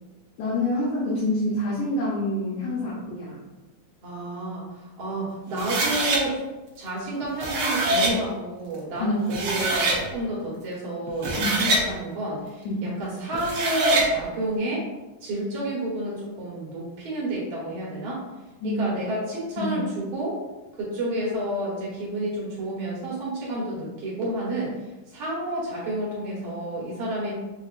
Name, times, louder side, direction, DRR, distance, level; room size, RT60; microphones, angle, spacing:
voice 1, 0.4-3.4 9.0-9.2 11.4-11.6 12.7-12.9 18.6-18.8 19.6-19.7, left 1 dB, 80° left, -7 dB, 2.2 m, -27 dB
voice 2, 4.0-6.4 6.8-14.9 15.2-18.2 18.6-20.4 20.8-27.4, right 1 dB, 60° right, -5 dB, 2.2 m, -30 dB
sound 1, 5.6-6.2 7.2-8.1 8.9-9.0 9.3-10.0 11.1-11.8 13.3-14.1, right 2 dB, 75° right, 1.2 m, -24 dB
6.2 x 2.7 x 2.5 m, 1.1 s
omnidirectional pair, 3.5 m